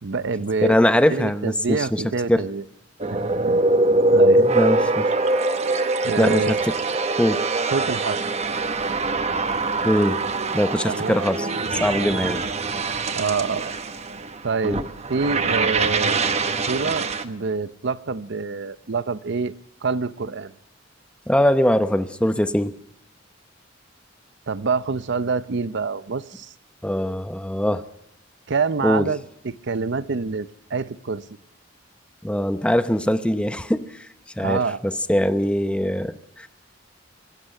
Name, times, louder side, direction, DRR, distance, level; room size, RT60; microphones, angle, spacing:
voice 1, 0.0-0.8 1.1-2.6 3.5-3.6 4.1-4.5 6.0-6.6 7.7-8.3 10.9-11.2 13.1-13.7 14.4-14.8 15.1-16.2 16.7-19.5 19.8-20.5 24.5-26.5 28.5-31.2 34.4-34.8, right 4 dB, 65° right, 14 dB, 0.7 m, -26 dB
voice 2, 0.6-2.0 2.3-2.5 4.4-5.1 6.2-6.8 7.2-7.5 9.8-10.2 10.5-12.5 14.6-14.8 21.3-22.7 26.8-27.8 28.8-29.1 32.2-34.0 34.4-36.5, left 1 dB, 5° left, 11 dB, 0.8 m, -22 dB
sound 1, 3.0-17.2, right 2 dB, 35° right, 1.0 m, -23 dB
25.0 x 12.5 x 8.8 m, 0.80 s
head